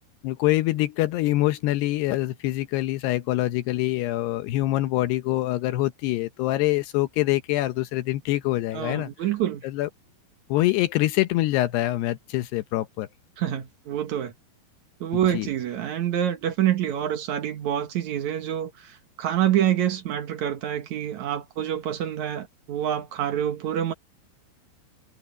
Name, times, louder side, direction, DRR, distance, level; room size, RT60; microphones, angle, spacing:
voice 1, 0.2-9.1 9.6-9.9 10.5-13.1 15.3-15.5, left 16 dB, 75° left, 2.5 m, -25 dB
voice 2, 8.7-9.6 13.4-14.3 15.0-23.9, right 10 dB, 75° right, 1.7 m, -27 dB
omnidirectional pair, 5.4 m